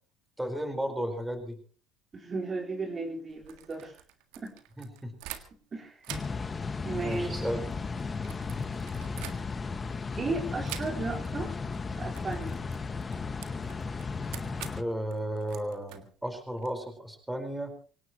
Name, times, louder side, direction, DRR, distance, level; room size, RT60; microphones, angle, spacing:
voice 1, 0.4-1.6 4.8-5.1 7.0-7.6 14.8-17.7, equal, 5° right, 6 dB, 4.4 m, -34 dB
voice 2, 2.1-3.9 4.4-4.5 5.7-6.0 6.8-7.5 10.2-11.5 12.0-12.6, right 3 dB, 35° right, 0 dB, 4.2 m, -34 dB
sound 1, 3.3-5.7 6.0-9.8 10.6-11.3 11.6-11.8 12.1-16.7, right 12 dB, 75° right, 1.7 m, -47 dB
sound 2, 6.1-14.8, left 4 dB, 30° left, 1.5 m, -35 dB
25.5 x 17.5 x 3.0 m, 0.38 s
hypercardioid pair, 65°, 0 cm